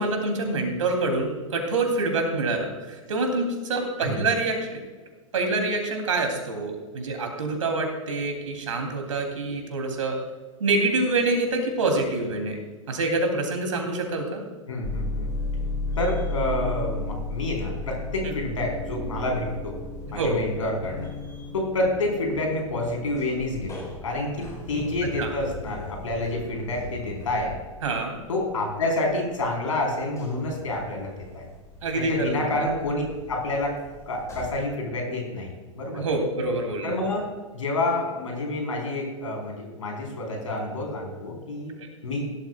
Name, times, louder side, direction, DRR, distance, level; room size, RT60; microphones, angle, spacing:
voice 1, 0.0-4.8 5.3-10.2 10.6-12.6 12.9-14.4 18.2-18.3 20.2-20.4 25.2-25.3 27.8-28.2 31.8-32.6 35.9-37.0, right 2 dB, 70° right, 3 dB, 3.2 m, -26 dB
voice 2, 14.7-15.3 16.0-19.8 20.1-21.1 21.5-27.5 28.3-31.5 31.9-33.8 34.1-36.0 36.8-37.2 37.5-41.7 42.0-42.3, left 2 dB, 70° left, 1 dB, 4.4 m, -28 dB
sound 1, 14.8-29.4 29.8-34.6, left 2 dB, 20° left, 4.1 m, -35 dB
17.0 x 12.5 x 2.4 m, 1.3 s
figure-of-eight pair, 105°, 17 cm